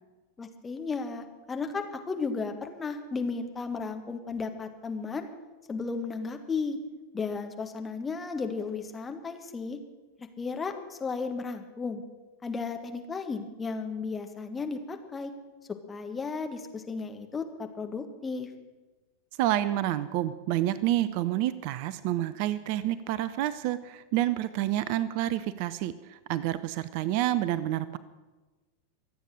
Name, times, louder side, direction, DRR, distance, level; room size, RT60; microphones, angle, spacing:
voice 1, 0.4-5.3 5.7-6.8 7.1-9.8 10.2-12.0 12.4-15.3 15.9-18.5, left 4 dB, 15° left, 5 dB, 1.6 m, -34 dB
voice 2, 19.4-28.0, right 13 dB, 45° right, 16 dB, 0.5 m, -29 dB
24.5 x 8.3 x 6.4 m, 1.2 s
figure-of-eight pair, 90°, 0 cm